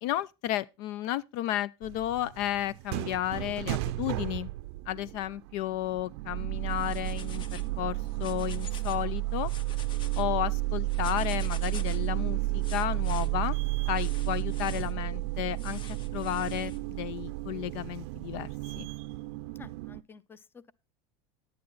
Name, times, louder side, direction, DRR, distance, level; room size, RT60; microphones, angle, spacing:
voice 1, 0.0-4.5 4.9-9.5 10.2-13.6 13.9-15.8 16.1-18.5 18.8-18.9, left 13 dB, 65° left, 0.5 m, -33 dB
sound 1, 1.8-20.0, right 18 dB, 70° right, 0.5 m, -32 dB
sound 2, 6.7-7.7 8.1-9.0 9.4-10.2 10.9-12.1 12.6-13.3 13.9-14.9 15.6-16.8, left 6 dB, 35° left, 1.0 m, -47 dB
voice 2, 19.5-20.7, left 5 dB, 15° left, 0.6 m, -51 dB
10.5 x 9.4 x 3.9 m
supercardioid pair, 125°, 14 cm